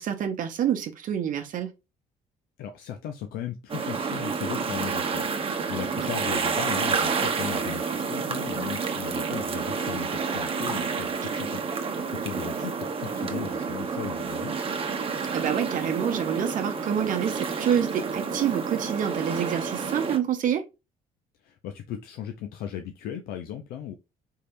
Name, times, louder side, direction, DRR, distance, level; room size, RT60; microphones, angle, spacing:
voice 1, 0.0-1.7 6.0-6.1 15.3-20.6, right 9 dB, 60° right, 0.8 m, -27 dB
voice 2, 2.6-14.5 21.4-23.9, left 10 dB, 80° left, 0.6 m, -37 dB
sound 1, 3.7-20.2, right 5 dB, 35° right, 1.0 m, -29 dB
4.6 x 3.3 x 2.6 m
cardioid pair, 90°, 16 cm